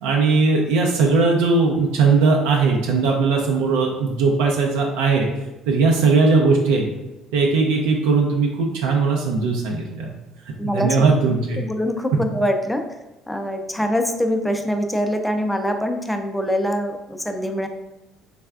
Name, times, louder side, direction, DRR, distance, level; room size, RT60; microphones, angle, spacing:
voice 1, 0.0-5.3 5.7-6.9 7.3-10.1 10.6-11.6, right 4 dB, 90° right, 0 dB, 0.4 m, -19 dB
voice 2, 10.6-11.1 11.6-12.8 13.3-17.7, equal, 5° left, 5 dB, 0.4 m, -24 dB
3.3 x 3.3 x 2.4 m, 1.0 s
supercardioid pair, 90°, 0 cm